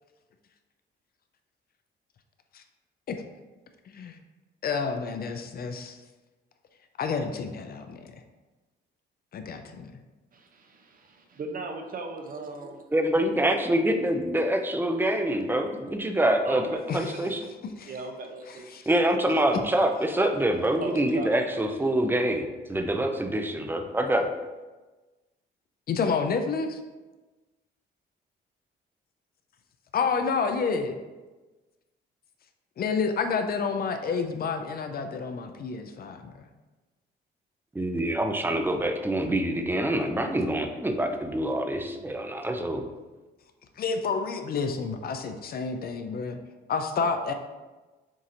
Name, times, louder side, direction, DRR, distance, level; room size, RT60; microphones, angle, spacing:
voice 1, 4.6-6.0 7.0-8.2 9.3-9.9 16.9-17.1 17.8-17.9 18.5-18.9 25.9-26.8 29.9-31.0 32.8-36.5 43.8-46.4 46.7-47.3, left 5 dB, 50° left, 6 dB, 0.5 m, -29 dB
voice 2, 10.3-12.9 16.4-17.4 17.8-18.7 20.8-21.9, right 3 dB, 45° right, 4 dB, 0.7 m, -38 dB
voice 3, 12.9-16.6 16.9-17.4 18.9-24.3 37.7-42.8, right 1 dB, 10° right, 5 dB, 0.5 m, -25 dB
7.3 x 2.7 x 2.6 m, 1.2 s
cardioid pair, 90°, 20 cm